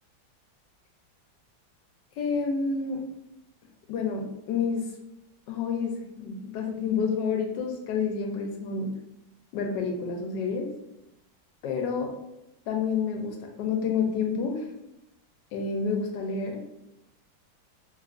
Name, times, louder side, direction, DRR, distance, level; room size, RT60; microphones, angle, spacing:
voice 1, 2.2-3.0 3.9-4.9 5.5-8.9 9.5-10.7 11.6-12.1 12.7-14.6 15.5-16.6, left 5 dB, 75° left, 2 dB, 1.1 m, -29 dB
3.2 x 2.3 x 2.4 m, 0.87 s
omnidirectional pair, 2.1 m